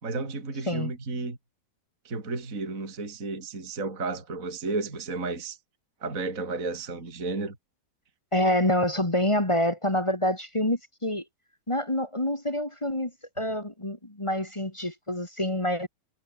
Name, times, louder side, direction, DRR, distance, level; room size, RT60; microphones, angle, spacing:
voice 1, 0.0-1.4 2.0-5.6 6.0-7.6, right 3 dB, 20° right, 4.2 m, -32 dB
voice 2, 8.3-11.2 11.7-15.9, left 1 dB, 10° left, 1.5 m, -27 dB
omnidirectional pair, 4.2 m